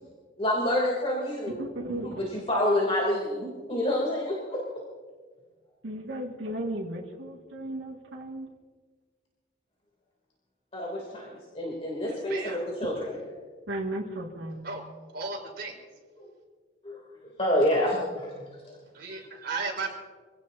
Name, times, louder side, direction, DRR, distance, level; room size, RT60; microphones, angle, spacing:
voice 1, 0.4-1.6 1.9-4.6 10.7-13.1 16.2-16.3 16.8-18.8, left 1 dB, 35° left, -2 dB, 3.0 m, -28 dB
voice 2, 1.5-2.2 5.8-8.5 13.7-14.7, right 1 dB, 85° right, -2 dB, 2.0 m, -35 dB
voice 3, 12.1-12.6 14.6-14.8 15.1-15.8 18.9-19.9, right 4 dB, 60° right, -2 dB, 4.4 m, -35 dB
26.0 x 17.0 x 2.8 m, 1.5 s
head